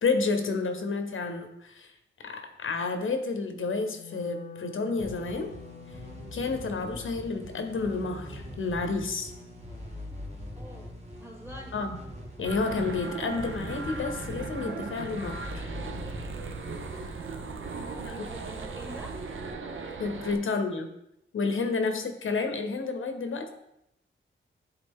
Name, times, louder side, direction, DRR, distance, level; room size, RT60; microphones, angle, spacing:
voice 1, 0.0-1.9 2.2-5.5 6.3-9.3 11.7-12.0 12.4-15.7 18.0-18.1 20.0-20.9 21.3-23.5, left 4 dB, 75° left, 7 dB, 0.8 m, -30 dB
Wind instrument woodwind instrument, 3.9-10.1, left 7 dB, 45° left, 0.4 m, -49 dB
sound 1, 5.0-18.3, left 1 dB, 30° right, 1.8 m, -43 dB
voice 2, 10.5-11.8 17.6-19.2 20.2-20.4, equal, 10° right, 0 dB, 1.5 m, -46 dB
sound 2, 12.4-20.3, right 4 dB, 70° right, 0.8 m, -38 dB
9.9 x 3.9 x 3.6 m, 0.81 s
wide cardioid pair, 120°, 21 cm